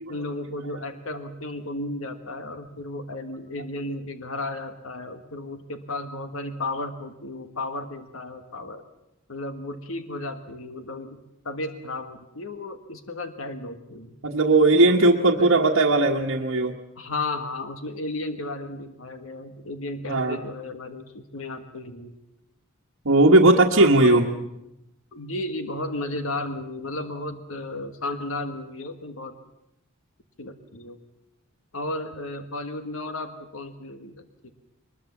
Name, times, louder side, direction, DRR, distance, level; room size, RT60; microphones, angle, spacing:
voice 1, 0.1-8.8 9.3-14.1 14.9-15.5 17.0-22.1 23.8-24.2 25.1-29.3 30.4-31.0 31.7-34.2, left 2 dB, 70° left, 8 dB, 1.6 m, -34 dB
voice 2, 14.2-16.8 20.1-20.4 23.0-24.3, right 2 dB, 70° right, -2 dB, 1.4 m, -18 dB
22.5 x 21.0 x 7.2 m, 0.87 s
head